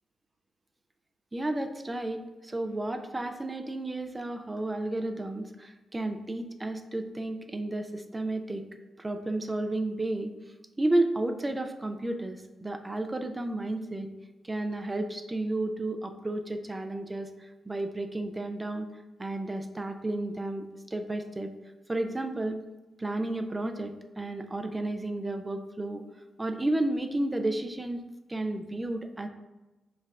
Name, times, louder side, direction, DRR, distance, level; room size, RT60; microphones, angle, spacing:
voice 1, 1.3-8.6 9.0-10.3 10.8-14.1 14.4-18.9 19.2-21.5 21.9-22.6 23.0-26.0 26.4-28.0 28.3-29.3, right 2 dB, 25° right, 6 dB, 0.4 m, -32 dB
4.6 x 2.3 x 3.3 m, 1.1 s
hypercardioid pair, 40°, 0 cm